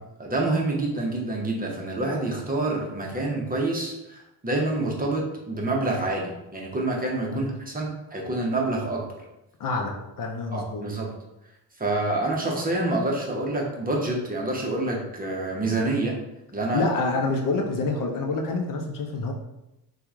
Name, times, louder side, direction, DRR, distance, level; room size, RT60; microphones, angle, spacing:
voice 1, 0.2-9.0 10.5-11.1 11.8-16.1 16.5-16.9, right 2 dB, 20° right, -1 dB, 0.8 m, -27 dB
voice 2, 9.6-10.8 16.7-19.3, left 3 dB, 50° left, 2 dB, 0.6 m, -27 dB
2.9 x 2.4 x 3.6 m, 0.90 s
supercardioid pair, 70°, 43 cm